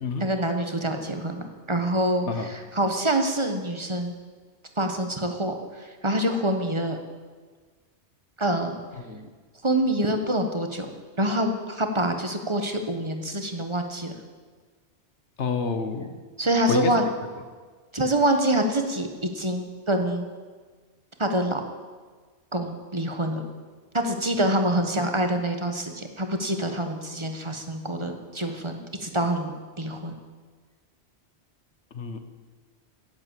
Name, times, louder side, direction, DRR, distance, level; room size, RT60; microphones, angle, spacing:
voice 1, 0.2-4.1 4.8-7.0 8.4-8.8 9.6-10.9 11.2-14.1 16.4-17.1 17.9-20.3 21.2-21.6 22.5-23.4 23.9-30.2, right 1 dB, 25° right, 5 dB, 1.3 m, -26 dB
voice 2, 15.4-16.2 16.7-16.9 31.9-32.2, left 4 dB, 85° left, 8 dB, 1.5 m, -28 dB
17.0 x 7.9 x 7.5 m, 1.5 s
omnidirectional pair, 1.1 m